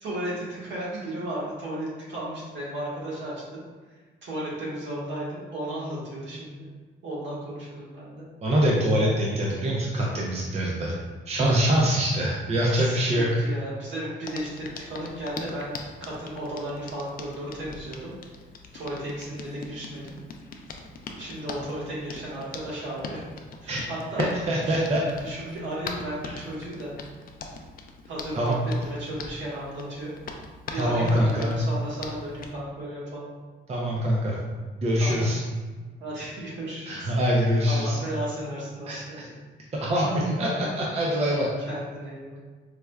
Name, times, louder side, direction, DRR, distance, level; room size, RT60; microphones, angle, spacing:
voice 1, 0.0-3.6 3.9-6.6 7.0-8.2 12.8-18.1 18.7-20.2 21.2-23.2 23.6-24.3 24.6-24.8 25.2-26.9 28.0-30.1 30.7-33.2 35.0-35.3 36.0-37.1 37.7-39.3 40.0-40.7 41.7-42.4, right 1 dB, 65° right, -6 dB, 1.3 m, -34 dB
voice 2, 8.4-10.9 11.3-13.5 23.7-23.8 24.2-25.0 26.3-26.4 28.3-28.5 30.7-31.6 33.7-34.4 34.8-35.4 36.9-38.0 38.9-39.2 39.8-41.5, equal, 35° right, -3 dB, 0.5 m, -24 dB
Hands, 14.2-32.5, left 4 dB, 45° left, 0.4 m, -42 dB
4.7 x 2.1 x 2.2 m, 1.4 s
cardioid pair, 90°, 20 cm